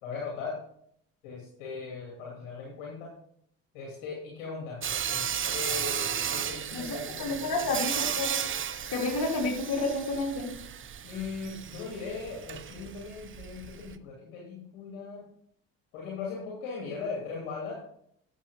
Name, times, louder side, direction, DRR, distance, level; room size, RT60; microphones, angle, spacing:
voice 1, 0.0-0.6 1.2-3.1 3.7-7.8 11.0-15.2 15.9-17.9, left 4 dB, 80° left, -3 dB, 2.7 m, -39 dB
Sawing, 4.8-13.9, right 8 dB, 30° right, 0.7 m, -34 dB
voice 2, 6.7-8.4 8.9-10.5, left 2 dB, 60° left, -2 dB, 4.0 m, -30 dB
11.0 x 7.8 x 3.5 m, 0.67 s
hypercardioid pair, 60°, 38 cm